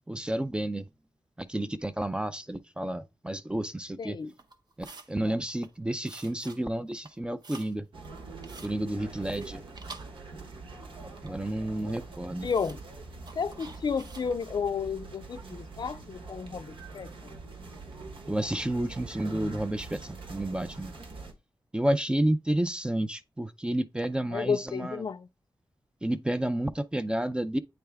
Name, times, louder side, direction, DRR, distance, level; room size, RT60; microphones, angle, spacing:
voice 1, 0.1-0.9 1.4-4.2 4.8-7.9 8.6-9.6 11.2-12.5 18.3-20.9 21.7-25.0 26.0-27.6, right 1 dB, 10° right, 0.4 m, -30 dB
voice 2, 4.0-4.3 5.2-5.4 12.4-12.8 13.3-17.4 24.3-25.3, left 6 dB, 55° left, 0.4 m, -32 dB
sound 1, 4.3-5.1 5.5-5.8 6.0-6.6 6.9-7.7 8.0-8.8 9.2-10.6 10.8-11.5 11.9-12.0 12.4-12.8 13.2-14.3, right 3 dB, 55° right, 0.7 m, -49 dB
sound 2, 7.9-21.3, right 3 dB, 85° right, 1.2 m, -44 dB
8.6 x 3.4 x 3.4 m
wide cardioid pair, 140°, 9 cm